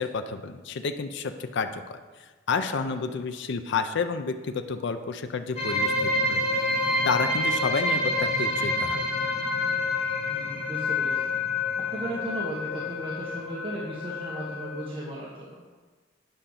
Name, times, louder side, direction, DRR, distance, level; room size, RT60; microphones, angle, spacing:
voice 1, 0.0-2.0 2.5-6.4 7.0-9.0, left 5 dB, 65° left, 8 dB, 0.5 m, -30 dB
sound 1, 5.6-14.8, left 2 dB, 35° left, 1.8 m, -28 dB
voice 2, 10.3-11.2 11.8-15.7, right 1 dB, 30° right, -5 dB, 1.2 m, -36 dB
9.0 x 5.0 x 5.7 m, 1.4 s
head